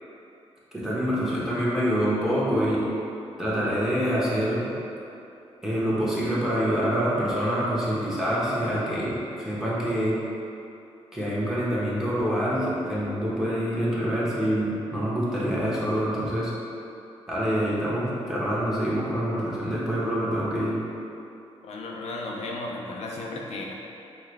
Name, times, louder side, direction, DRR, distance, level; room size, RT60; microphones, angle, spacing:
voice 1, 0.7-2.8 3.4-4.7 5.6-10.2 11.1-16.5 17.3-20.7, equal, 5° right, -8 dB, 1.0 m, -26 dB
voice 2, 21.6-23.7, left 2 dB, 90° left, -2 dB, 0.5 m, -34 dB
5.6 x 2.3 x 3.3 m, 2.8 s
cardioid pair, 100°, 11 cm